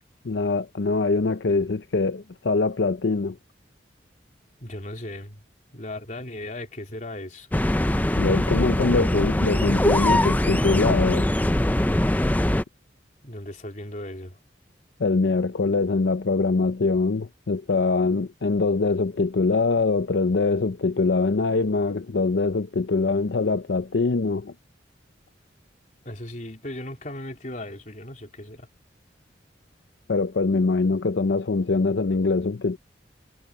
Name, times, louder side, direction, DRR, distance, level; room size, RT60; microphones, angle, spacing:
voice 1, 0.2-3.4 8.2-11.3 15.0-24.5 30.1-32.8, left 3 dB, 75° left, 0.6 m, -23 dB
voice 2, 4.6-5.4 5.7-7.5 13.2-14.4 26.1-28.7, left 1 dB, 45° left, 3.8 m, -37 dB
sound 1, 7.5-12.6, left 1 dB, 10° left, 0.5 m, -22 dB
head